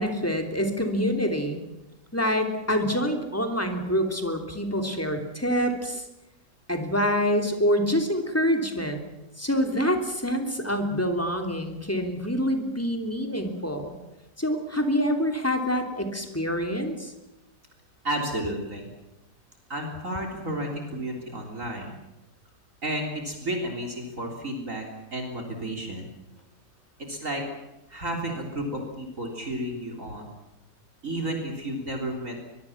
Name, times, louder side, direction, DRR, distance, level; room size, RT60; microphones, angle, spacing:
voice 1, 0.0-1.6 2.1-6.0 6.7-9.0 9.4-13.9 14.4-17.1, equal, 10° left, 4 dB, 3.1 m, -26 dB
voice 2, 18.0-18.9 19.7-21.9 22.8-24.9 25.1-26.1 27.1-27.4 27.9-30.3 31.0-32.4, right 1 dB, 45° right, 2 dB, 3.9 m, -32 dB
23.0 x 23.0 x 7.3 m, 0.96 s
omnidirectional pair, 1.8 m